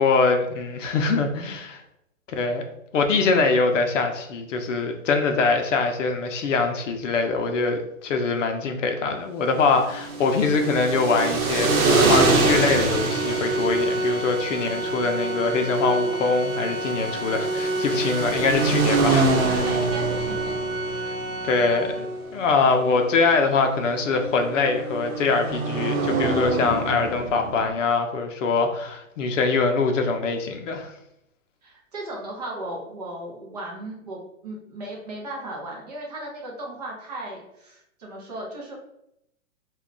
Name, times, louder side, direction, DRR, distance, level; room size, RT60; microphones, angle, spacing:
voice 1, 0.0-1.8 2.4-2.6 2.9-19.6 20.9-21.1 21.4-22.1 22.3-30.9, left 4 dB, 65° left, 5 dB, 0.6 m, -23 dB
sound 1, 9.8-27.7, right 3 dB, 90° right, 0.8 m, -26 dB
Organ, 11.6-22.3, right 1 dB, 15° left, 1.0 m, -29 dB
voice 2, 19.6-20.6 31.6-38.7, right 1 dB, 30° right, -2 dB, 0.5 m, -36 dB
2.3 x 2.2 x 3.7 m, 0.81 s
hypercardioid pair, 155°, 42 cm